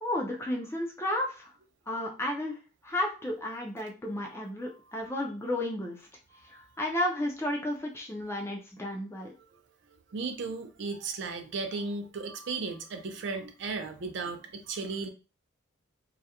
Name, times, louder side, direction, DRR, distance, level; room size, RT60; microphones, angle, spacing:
voice 1, 0.0-1.5 1.9-2.6 2.8-6.0 6.5-9.3, left 1 dB, 10° left, 1 dB, 0.3 m, -32 dB
voice 2, 10.1-15.1, right 4 dB, 55° right, 6 dB, 0.4 m, -35 dB
2.3 x 2.0 x 2.8 m, 0.32 s
head